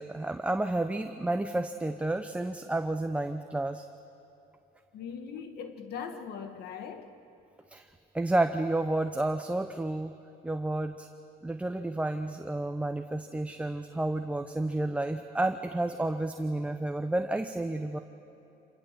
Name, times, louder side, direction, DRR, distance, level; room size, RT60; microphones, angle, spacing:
voice 1, 0.0-3.9 7.7-7.9 8.1-10.1 10.4-11.1 11.4-18.0, right 2 dB, 5° right, 7 dB, 0.8 m, -31 dB
voice 2, 4.9-7.1, left 6 dB, 70° left, 7 dB, 1.8 m, -40 dB
26.0 x 19.0 x 7.5 m, 2.8 s
cardioid pair, 110°, 17 cm